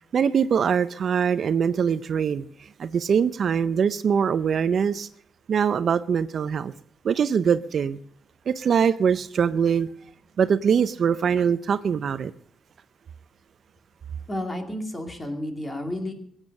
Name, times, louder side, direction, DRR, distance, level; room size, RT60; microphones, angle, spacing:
voice 1, 0.1-5.1 5.5-6.7 7.0-8.0 8.5-9.9 10.4-12.3, right 7 dB, 45° right, 0.5 m, -23 dB
voice 2, 14.3-16.1, left 1 dB, 15° left, 2.4 m, -31 dB
22.0 x 9.0 x 6.5 m
wide cardioid pair, 170°, 0 cm